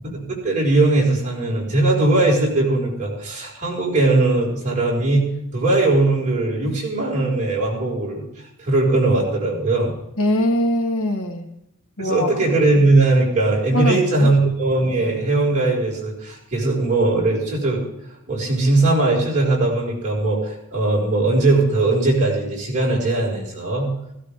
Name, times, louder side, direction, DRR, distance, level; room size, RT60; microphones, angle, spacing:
voice 1, 0.0-5.2 5.5-8.2 8.6-9.9 12.0-17.8 18.3-23.9, right 2 dB, 35° right, -4 dB, 5.8 m, -19 dB
voice 2, 10.2-11.5 12.0-12.3 13.7-14.3, left 1 dB, 65° left, 4 dB, 1.9 m, -22 dB
17.0 x 16.5 x 3.7 m, 0.80 s
head